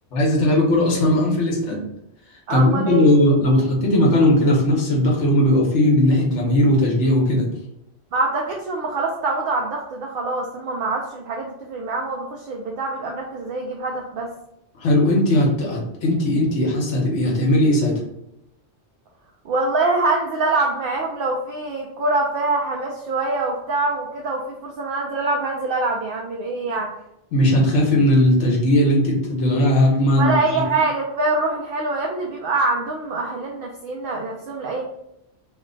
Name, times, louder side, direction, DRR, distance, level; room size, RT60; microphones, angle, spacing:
voice 1, 0.1-1.8 2.5-7.5 14.8-18.0 27.3-30.6, left 1 dB, 85° left, -2 dB, 1.2 m, -18 dB
voice 2, 2.5-3.1 8.1-14.3 19.4-26.9 30.2-34.8, right 3 dB, 60° right, 0 dB, 0.7 m, -24 dB
3.0 x 2.1 x 3.8 m, 0.81 s
omnidirectional pair, 1.2 m